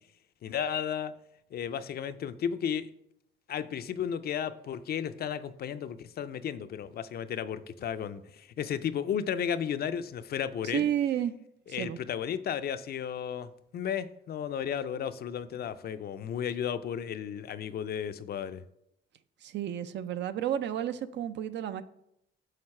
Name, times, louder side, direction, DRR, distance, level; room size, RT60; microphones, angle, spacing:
voice 1, 0.4-1.1 1.5-2.9 3.5-10.9 11.7-18.6, left 8 dB, 50° left, 12 dB, 0.4 m, -34 dB
voice 2, 10.7-11.3 11.8-12.0 19.4-21.8, right 10 dB, 65° right, 12 dB, 0.5 m, -31 dB
6.6 x 3.9 x 4.3 m, 0.76 s
cardioid pair, 90°, 20 cm